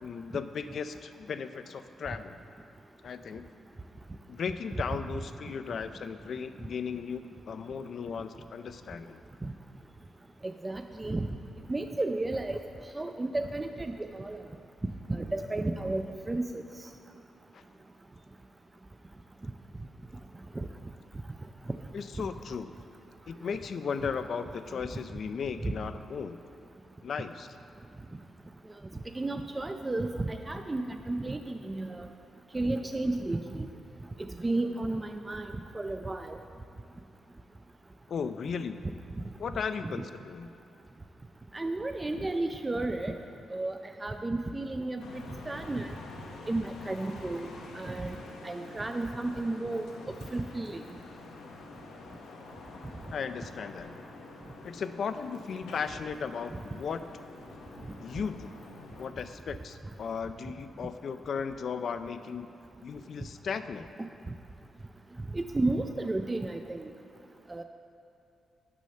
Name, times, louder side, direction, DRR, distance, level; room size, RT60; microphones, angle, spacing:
voice 1, 0.0-2.4 3.0-3.5 4.3-9.2 17.5-17.6 21.9-22.7 23.3-26.4 27.0-27.5 38.1-38.8 39.4-40.5 53.1-53.9 54.6-57.0 58.0-58.5 59.0-62.5 62.8-63.9, left 6 dB, 65° left, 10 dB, 0.3 m, -36 dB
voice 2, 10.4-11.3 11.7-12.6 12.9-14.4 15.1-16.6 20.6-20.7 25.6-25.7 29.1-32.1 32.5-33.6 34.2-35.5 35.7-36.4 39.8-40.0 41.5-43.2 43.5-45.9 46.5-47.5 47.8-48.1 48.4-49.9 50.3-50.8 65.3-66.9 67.5-67.6, right 2 dB, 25° right, 6 dB, 0.4 m, -32 dB
sound 1, 45.0-59.1, left 3 dB, 85° left, 0.7 m, -47 dB
6.1 x 5.5 x 5.6 m, 2.6 s
supercardioid pair, 55°, 0 cm